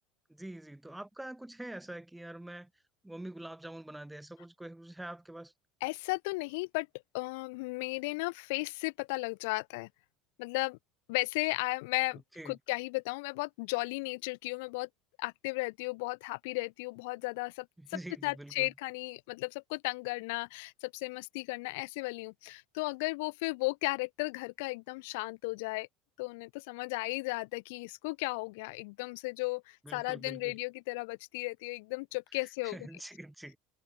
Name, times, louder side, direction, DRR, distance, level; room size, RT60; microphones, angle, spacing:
voice 1, 0.3-2.7 3.0-5.5 12.4-12.6 17.8-18.7 29.8-30.6 32.6-33.6, right 1 dB, 5° right, 0.6 m, -45 dB
voice 2, 5.8-6.9 7.1-9.9 10.4-10.8 11.1-14.9 15.2-25.9 26.2-32.8, left 26 dB, 75° left, 0.3 m, -35 dB
cardioid pair, 175°, 0 cm